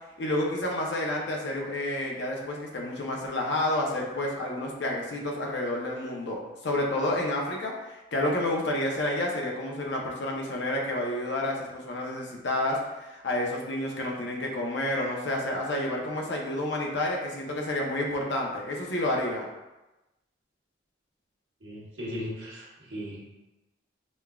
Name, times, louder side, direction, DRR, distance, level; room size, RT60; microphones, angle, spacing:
voice 1, 0.2-6.4 6.6-19.4, left 1 dB, 65° left, -1 dB, 0.7 m, -30 dB
voice 2, 21.6-23.4, equal, 70° right, -5 dB, 1.1 m, -37 dB
5.1 x 2.4 x 2.3 m, 1.0 s
head